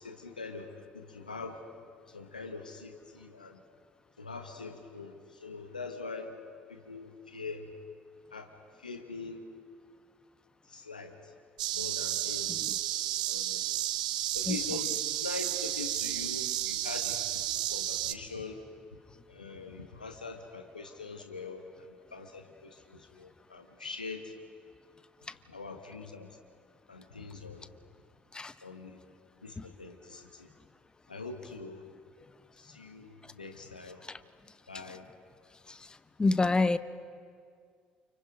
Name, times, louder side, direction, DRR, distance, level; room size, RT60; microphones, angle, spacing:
voice 1, 0.0-1.6 2.1-3.6 4.2-6.4 6.7-7.7 8.3-8.5 8.8-9.4 10.6-11.3 11.7-12.6 13.2-13.8 14.3-18.6 19.3-24.3 25.5-26.4 26.9-27.7 28.6-29.0 29.4-30.5 31.1-31.8 32.5-34.0 34.7-35.1, left 4 dB, 85° left, 5 dB, 1.6 m, -43 dB
sound 1, 11.6-18.1, right 13 dB, 70° right, 0.9 m, -32 dB
voice 2, 36.2-36.8, left 3 dB, 20° left, 14 dB, 1.0 m, -25 dB
29.5 x 29.0 x 5.3 m, 2.1 s
figure-of-eight pair, 55°, 4 cm